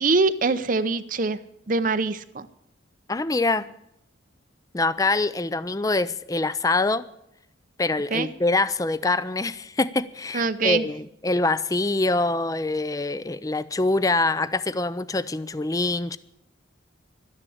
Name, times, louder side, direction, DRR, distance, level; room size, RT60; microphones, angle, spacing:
voice 1, 0.0-1.4 1.7-2.5 8.1-8.3 10.3-10.9, right 4 dB, 45° right, 12 dB, 0.6 m, -23 dB
voice 2, 3.1-3.7 4.7-7.0 7.8-16.2, left 2 dB, 15° left, 16 dB, 0.4 m, -24 dB
12.5 x 10.0 x 8.5 m, 0.79 s
head